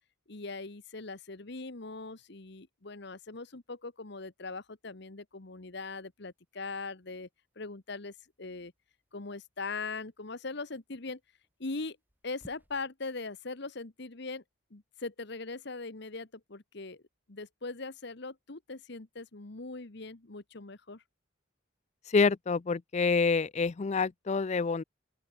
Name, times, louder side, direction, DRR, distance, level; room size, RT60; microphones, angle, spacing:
voice 1, 0.3-7.3 7.6-8.7 9.1-11.2 11.6-12.0 12.2-14.4 14.7-17.0 17.3-21.0, left 3 dB, 60° left, 1.3 m, -40 dB
sound 1, 5.5-12.9, equal, 10° right, 1.8 m, -64 dB
voice 2, 22.1-24.8, left 4 dB, 35° left, 0.4 m, -27 dB
open air
head